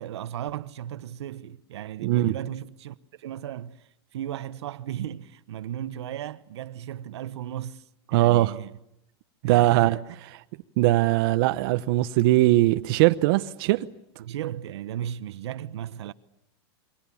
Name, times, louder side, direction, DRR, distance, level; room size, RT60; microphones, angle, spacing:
voice 1, 0.0-7.8 8.1-8.8 9.4-10.2 14.2-16.1, right 11 dB, 80° right, 1.1 m, -35 dB
voice 2, 2.0-2.4 8.1-8.5 9.4-10.0 10.8-13.9, right 16 dB, 60° right, 1.0 m, -20 dB
29.5 x 23.5 x 7.1 m
supercardioid pair, 130°, 14 cm